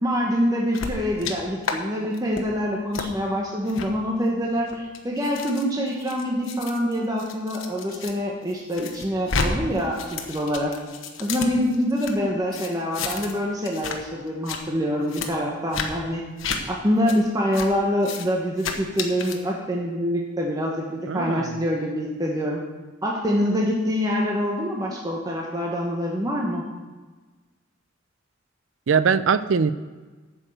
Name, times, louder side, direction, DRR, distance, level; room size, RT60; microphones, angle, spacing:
voice 1, 0.0-10.7 11.2-16.2 16.7-22.6 23.0-26.6, equal, 20° right, -2 dB, 1.1 m, -25 dB
sound 1, 0.7-1.3 1.6-1.8 2.1-2.4 2.9-3.1 3.7-3.9 4.5-8.1 8.5-9.5 9.8-12.1 12.5-13.4 13.6-14.0 14.3-14.6 15.1-15.3 15.7-15.9 16.4-16.6 17.1-17.2 17.5-17.7 18.0-18.3 18.6-19.4, left 5 dB, 80° left, 1.1 m, -31 dB
voice 2, 21.1-21.6 28.9-29.7, right 6 dB, 75° right, 14 dB, 0.5 m, -21 dB
9.0 x 6.4 x 7.7 m, 1.3 s
head